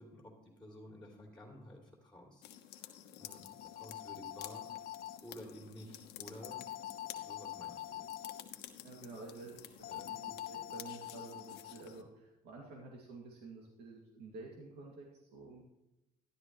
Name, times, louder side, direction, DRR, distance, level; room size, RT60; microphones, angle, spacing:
voice 1, 0.0-4.7 5.2-6.6 7.1-8.2 9.9-10.1, equal, 5° left, 0 dB, 2.8 m, -53 dB
sound 1, 2.4-12.0, left 11 dB, 85° left, 1.1 m, -52 dB
sound 2, 3.2-5.2 6.4-8.4 9.8-11.8, left 12 dB, 60° left, 0.5 m, -45 dB
voice 2, 8.8-15.6, right 3 dB, 80° right, -1 dB, 2.3 m, -50 dB
13.0 x 11.5 x 3.1 m, 0.95 s
cardioid pair, 110°, 17 cm